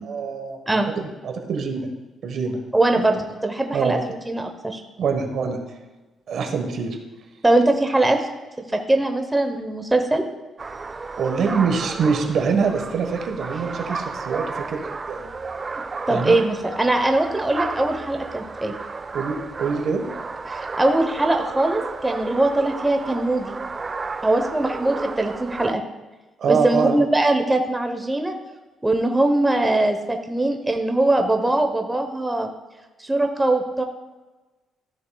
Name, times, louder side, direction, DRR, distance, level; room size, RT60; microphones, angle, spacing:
voice 1, 0.0-1.9 2.2-2.6 3.7-4.0 5.0-5.6 6.3-7.0 11.2-15.3 16.1-16.3 19.1-20.0 26.4-27.1, right 5 dB, 65° right, 4 dB, 1.2 m, -24 dB
voice 2, 2.7-4.8 7.4-8.2 8.7-10.2 15.7-15.8 16.1-18.7 20.5-23.5 24.2-25.8 26.5-28.3 28.8-32.5 33.0-33.8, right 2 dB, 10° right, 5 dB, 0.9 m, -21 dB
sound 1, 10.6-25.7, right 4 dB, 30° right, 0.4 m, -33 dB
14.0 x 6.6 x 2.3 m, 1.2 s
cardioid pair, 90°, 0 cm